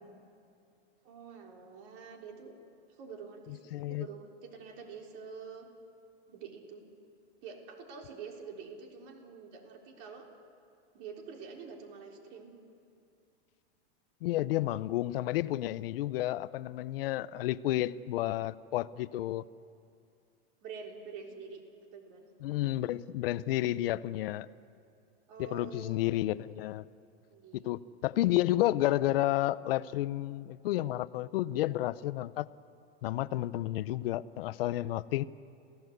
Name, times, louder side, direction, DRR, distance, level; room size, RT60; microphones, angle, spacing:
voice 1, 1.0-2.5 2.9-5.7 6.3-6.8 7.4-10.3 10.9-12.5 20.6-21.6 21.9-22.3 25.3-26.5 27.3-27.7, right 5 dB, 40° right, 3.8 m, -47 dB
voice 2, 3.7-4.1 14.2-19.4 22.4-24.5 25.4-26.8 27.5-32.5 33.0-35.2, left 15 dB, 60° left, 0.7 m, -31 dB
28.0 x 16.5 x 8.0 m
supercardioid pair, 155°, 33 cm